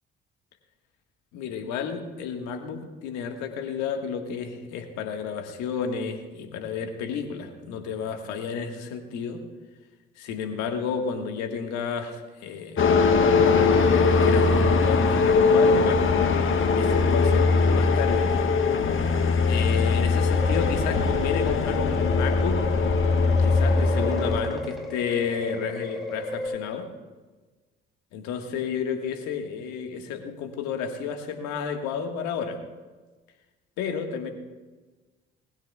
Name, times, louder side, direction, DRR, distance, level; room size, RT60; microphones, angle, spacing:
voice 1, 1.3-9.4 10.2-12.8 13.9-16.0 16.8-18.5 19.4-22.6 23.4-26.9 28.1-32.6 33.8-34.3, left 6 dB, 70° left, 5 dB, 1.7 m, -31 dB
sound 1, 12.8-24.4, left 4 dB, 45° left, 1.5 m, -21 dB
sound 2, 20.3-26.5, left 1 dB, ahead, 4.2 m, -33 dB
20.0 x 15.5 x 2.4 m, 1.3 s
hypercardioid pair, 45°, 29 cm